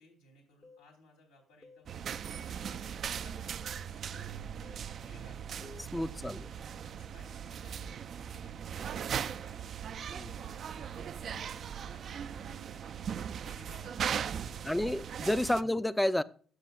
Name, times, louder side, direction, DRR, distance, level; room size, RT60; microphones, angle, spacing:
voice 1, 0.0-3.6 3.9-5.6 6.2-15.0 15.6-15.8, left 2 dB, 85° left, 2.8 m, -60 dB
sound 1, 0.6-0.9 1.6-1.9 2.6-2.9 3.6-3.9 4.6-4.9 5.6-5.9, left 3 dB, 35° left, 0.8 m, -54 dB
sound 2, 1.9-15.6, right 8 dB, 55° right, 0.3 m, -39 dB
voice 2, 5.8-6.4 10.1-10.3 14.6-16.2, left 1 dB, 10° left, 0.5 m, -30 dB
13.0 x 7.0 x 2.3 m
hypercardioid pair, 55°, 0 cm